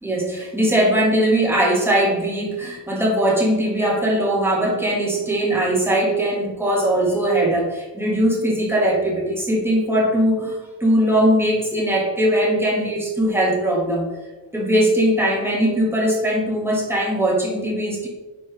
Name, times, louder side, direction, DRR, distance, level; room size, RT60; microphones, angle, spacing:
voice 1, 0.0-14.1 14.5-18.1, right 1 dB, 5° right, -3 dB, 1.9 m, -20 dB
10.5 x 4.0 x 3.5 m, 1.2 s
cardioid pair, 115°, 40 cm